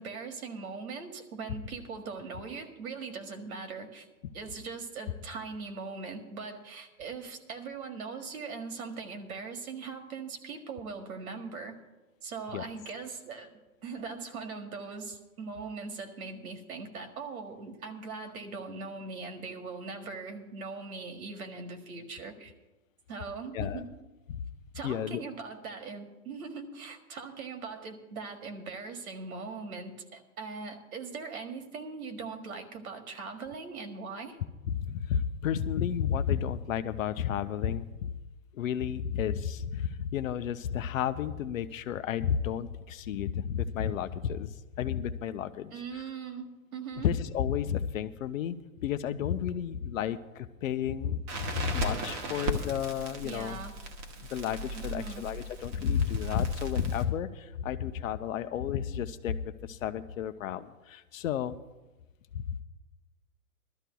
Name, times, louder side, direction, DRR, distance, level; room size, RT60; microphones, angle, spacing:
voice 1, 0.0-4.1 4.3-11.8 12.2-13.5 13.8-22.5 23.1-23.9 24.7-34.4 45.7-47.1 53.2-53.7 54.7-55.2, right 4 dB, 75° right, 4 dB, 1.7 m, -40 dB
voice 2, 24.8-25.2 34.8-38.1 38.5-44.5 44.8-45.7 47.0-48.6 48.8-53.6 54.2-59.4 59.7-61.6 62.3-62.6, left 8 dB, 65° left, 11 dB, 0.7 m, -32 dB
Crackle, 51.3-57.1, right 1 dB, 30° right, 1.0 m, -37 dB
21.5 x 13.0 x 2.3 m, 1.1 s
hypercardioid pair, 145°, 43 cm